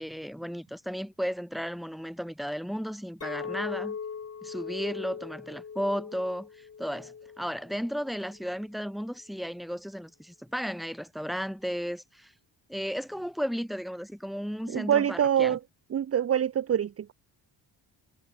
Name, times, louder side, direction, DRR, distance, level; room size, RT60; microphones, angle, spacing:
voice 1, 0.0-4.0 4.4-6.5 6.8-12.3 12.7-15.6, equal, ahead, 5.5 m, -34 dB
Chink clink, 3.2-8.4, left 6 dB, 35° left, 2.0 m, -40 dB
voice 2, 14.7-15.6 15.9-17.1, right 9 dB, 35° right, 0.5 m, -25 dB
wide cardioid pair, 170°, 45 cm